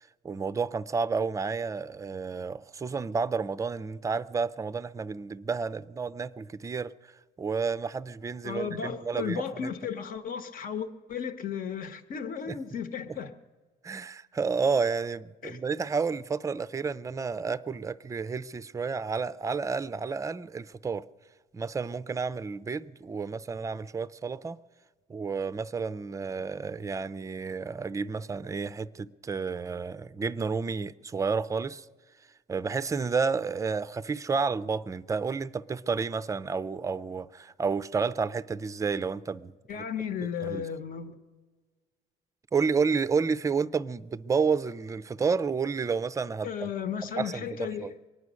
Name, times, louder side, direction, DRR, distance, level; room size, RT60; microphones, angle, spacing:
voice 1, 0.2-6.9 7.4-9.7 12.5-12.6 13.8-21.0 21.5-24.6 25.1-31.8 32.5-39.8 40.4-40.7 42.5-46.7 47.2-47.9, right 5 dB, 20° right, 0.4 m, -31 dB
voice 2, 8.4-13.3 15.4-15.6 39.7-41.2 46.4-47.9, left 7 dB, 55° left, 1.2 m, -34 dB
23.5 x 9.6 x 6.3 m
cardioid pair, 110°, 17 cm